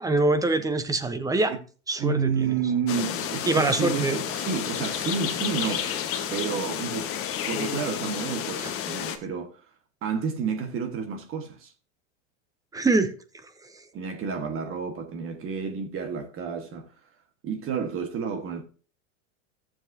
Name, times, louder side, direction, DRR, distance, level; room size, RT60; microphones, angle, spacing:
voice 1, 0.0-1.5 1.9-2.5 3.5-4.2 5.6-5.8 12.7-13.1 13.7-13.8, right 2 dB, 10° right, 0.9 m, -24 dB
voice 2, 2.0-5.9 6.3-7.2 7.5-9.7 10.0-11.7 13.9-16.9 17.4-18.6, right 6 dB, 35° right, 1.5 m, -30 dB
sound 1, 2.9-9.2, left 9 dB, 35° left, 1.3 m, -31 dB
14.5 x 7.3 x 2.7 m
supercardioid pair, 125°, 39 cm